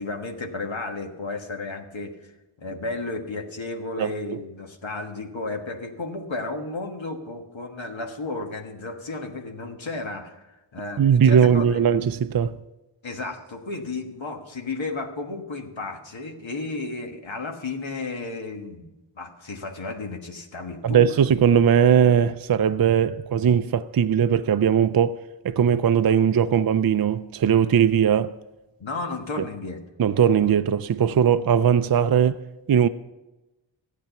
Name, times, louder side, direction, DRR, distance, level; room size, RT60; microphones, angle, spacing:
voice 1, 0.0-2.1 2.6-11.8 13.0-21.0 28.8-29.8, left 3 dB, 70° left, 1.5 m, -33 dB
voice 2, 11.0-12.6 20.8-25.2 25.4-28.3 30.0-32.4 32.7-32.9, right 8 dB, 50° right, 0.5 m, -19 dB
15.0 x 8.6 x 5.8 m
wide cardioid pair, 55°, 48 cm